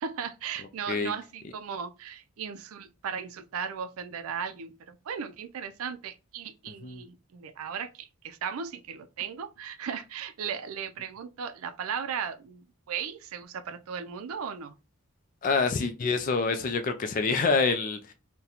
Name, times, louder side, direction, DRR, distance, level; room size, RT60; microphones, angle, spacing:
voice 1, 0.0-14.7, right 7 dB, 85° right, 0.4 m, -36 dB
voice 2, 15.4-18.1, left 4 dB, 40° left, 0.3 m, -26 dB
3.9 x 2.1 x 2.8 m
head